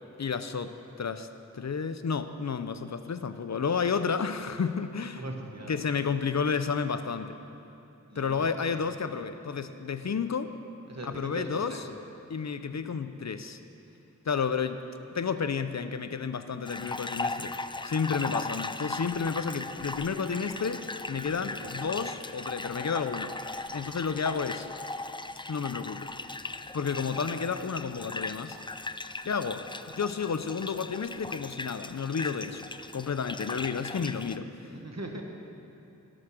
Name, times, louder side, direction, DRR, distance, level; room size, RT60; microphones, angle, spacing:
voice 1, 0.2-0.7 1.0-1.3 1.5-5.2 5.7-7.4 8.2-10.5 11.0-11.8 12.3-13.6 14.2-14.8 15.1-17.5 17.8-20.8 21.1-23.3 23.7-24.7 25.5-26.1 26.7-28.6 29.2-29.6 30.0-32.6 32.9-34.7, left 6 dB, 65° left, 10 dB, 0.6 m, -31 dB
voice 2, 5.1-5.8 8.1-8.8 10.9-11.8 21.4-21.9 33.4-33.6 34.6-35.2, right 2 dB, 60° right, 2 dB, 1.4 m, -41 dB
sound 1, 16.7-34.4, left 3 dB, 15° left, 0.3 m, -38 dB
17.5 x 6.2 x 6.3 m, 2.8 s
wide cardioid pair, 70°, 30 cm